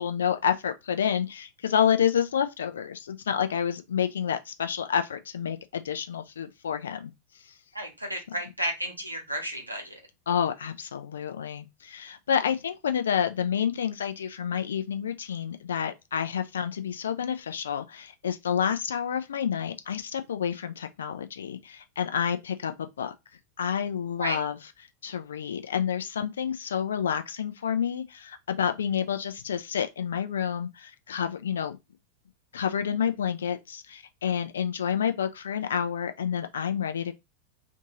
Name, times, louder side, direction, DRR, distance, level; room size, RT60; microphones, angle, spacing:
voice 1, 0.0-7.1 10.3-23.1 23.6-24.6 25.0-31.8 32.5-37.1, left 8 dB, 65° left, 0.4 m, -29 dB
voice 2, 7.7-10.0 24.2-24.4, equal, 85° right, 0.9 m, -32 dB
2.6 x 2.6 x 2.8 m
figure-of-eight pair, 90°, 0 cm